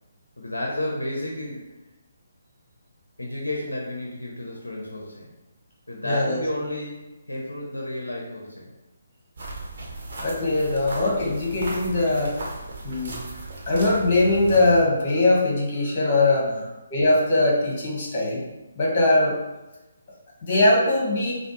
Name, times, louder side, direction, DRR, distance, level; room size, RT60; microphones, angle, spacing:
voice 1, 0.4-1.7 3.2-5.3 5.9-8.7 16.4-16.6, left 1 dB, 75° left, -2 dB, 0.7 m, -32 dB
voice 2, 6.0-6.4 10.2-12.3 12.8-13.2 13.7-16.5 16.9-18.4 18.8-19.4 20.4-21.4, left 2 dB, 35° left, -4 dB, 1.4 m, -21 dB
sound 1, 9.4-14.8, right 2 dB, 50° right, 1.0 m, -36 dB
4.9 x 2.2 x 3.0 m, 1.0 s
figure-of-eight pair, 140°, 0 cm